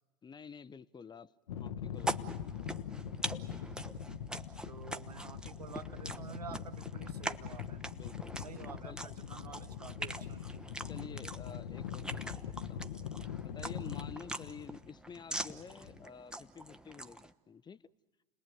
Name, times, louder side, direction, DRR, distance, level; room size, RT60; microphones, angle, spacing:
voice 1, 0.2-1.3 1.6-2.7 7.9-8.5 8.8-9.0 10.8-13.0 13.4-17.9, left 6 dB, 20° left, 16 dB, 0.7 m, -50 dB
sound 1, 1.5-16.0, left 8 dB, 70° left, 0.9 m, -43 dB
sound 2, 2.0-17.3, right 1 dB, 5° right, 1.0 m, -44 dB
voice 2, 4.7-7.8 8.4-10.5 11.0-11.2, right 6 dB, 85° right, 12 dB, 1.0 m, -49 dB
30.0 x 20.5 x 9.3 m, 1.3 s
figure-of-eight pair, 75°, 20 cm